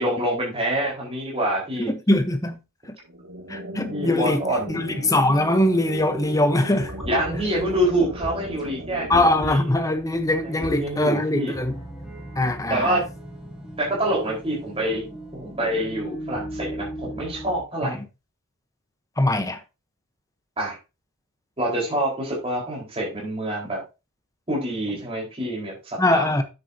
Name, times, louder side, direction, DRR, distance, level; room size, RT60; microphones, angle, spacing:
voice 1, 0.0-1.9 3.9-4.8 7.0-9.6 10.4-11.5 12.7-13.1 13.8-15.1 15.3-18.0 20.6-20.8 21.6-23.8 24.5-26.4, right 1 dB, 25° right, 4.5 m, -26 dB
voice 2, 1.8-2.6 2.9-3.0 3.5-4.4 4.7-6.9 9.1-11.7 12.4-13.0 17.8-18.0 19.2-19.6 26.0-26.4, left 1 dB, 15° left, 0.9 m, -22 dB
sound 1, 3.0-10.7, right 1 dB, 80° right, 1.5 m, -37 dB
sound 2, 6.8-17.6, equal, ahead, 2.8 m, -38 dB
9.6 x 7.9 x 2.8 m
head